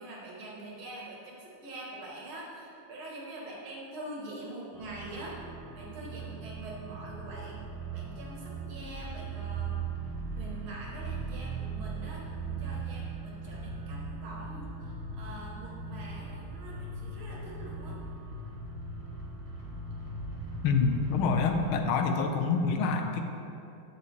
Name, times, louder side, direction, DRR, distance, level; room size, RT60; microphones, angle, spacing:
voice 1, 0.0-5.4 5.7-7.6 7.9-9.8 10.3-18.0, right 1 dB, 75° right, -3 dB, 2.4 m, -44 dB
sound 1, 4.7-21.7, right 3 dB, 20° right, 1.0 m, -39 dB
voice 2, 20.6-23.2, left 5 dB, 80° left, 5 dB, 1.5 m, -26 dB
8.6 x 6.7 x 4.5 m, 2.7 s
omnidirectional pair, 2.3 m